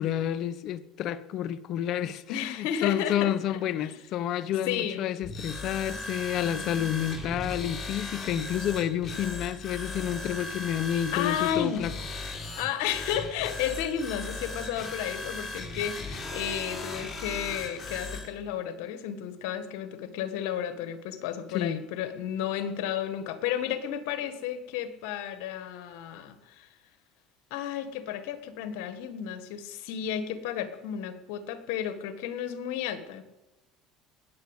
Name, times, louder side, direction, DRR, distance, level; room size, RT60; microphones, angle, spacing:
voice 1, 0.0-11.9 21.5-21.8, left 10 dB, 60° left, 0.9 m, -30 dB
voice 2, 2.3-3.3 3.8-3.9 4.7-5.0 5.9-6.0 6.4-6.9 11.1-12.3 12.6-26.7 27.5-33.2, left 9 dB, 80° left, 1.6 m, -33 dB
sound 1, 5.2-18.3, left 2 dB, 35° left, 4.0 m, -37 dB
19.0 x 8.0 x 8.1 m
supercardioid pair, 105°, 0 cm